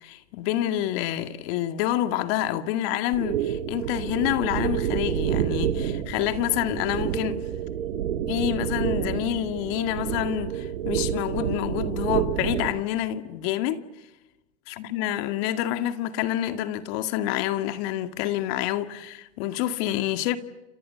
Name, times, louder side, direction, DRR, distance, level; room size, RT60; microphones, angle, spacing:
voice 1, 0.0-7.4 8.3-13.9 14.7-20.4, left 12 dB, 55° left, 2.2 m, -27 dB
sound 1, 3.1-12.8, right 9 dB, 80° right, 2.4 m, -28 dB
29.0 x 28.0 x 6.9 m
hypercardioid pair, 110°, 35 cm